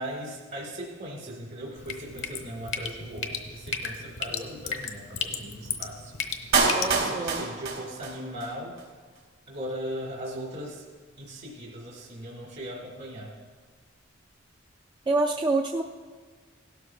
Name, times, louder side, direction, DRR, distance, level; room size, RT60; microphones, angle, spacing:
voice 1, 0.0-6.1 6.9-8.8 9.5-10.8 11.2-13.3, equal, 55° right, -2 dB, 1.6 m, -38 dB
Drip, 1.8-6.9, left 5 dB, 70° left, 1.1 m, -35 dB
Clapping, 6.5-8.5 8.8-8.9, right 4 dB, 80° right, 2.1 m, -26 dB
voice 2, 6.7-7.5 15.1-15.8, right 2 dB, 25° right, 1 dB, 0.4 m, -27 dB
17.0 x 12.5 x 2.3 m, 1.5 s
head